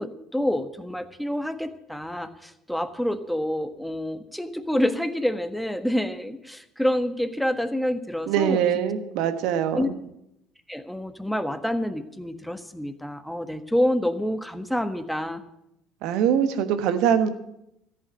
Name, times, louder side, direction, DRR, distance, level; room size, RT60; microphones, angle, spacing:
voice 1, 0.0-8.8 9.7-9.9 10.7-15.4, left 1 dB, 5° left, 10 dB, 1.4 m, -27 dB
voice 2, 8.3-9.9 16.0-17.3, right 8 dB, 65° right, 10 dB, 1.3 m, -23 dB
14.0 x 8.4 x 8.9 m, 0.83 s
hypercardioid pair, 60°, 0 cm